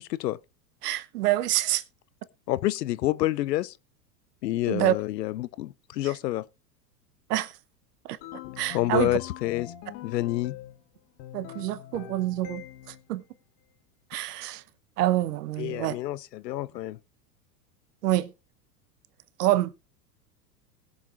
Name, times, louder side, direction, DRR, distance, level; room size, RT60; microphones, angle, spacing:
voice 1, 0.8-1.8 4.7-5.0 6.0-6.1 7.3-7.5 8.0-8.2 8.6-9.1 11.3-12.6 13.1-13.2 14.1-14.6 15.0-16.0 18.0-18.3 19.4-19.7, right 14 dB, 65° right, 1.0 m, -26 dB
voice 2, 2.5-3.7 4.4-6.4 8.7-9.7 10.0-10.5 15.6-17.0, left 15 dB, 75° left, 0.7 m, -28 dB
sound 1, 8.2-10.8 11.2-13.1, left 12 dB, 50° left, 1.4 m, -43 dB
20.0 x 7.3 x 2.5 m
hypercardioid pair, 95°, 49 cm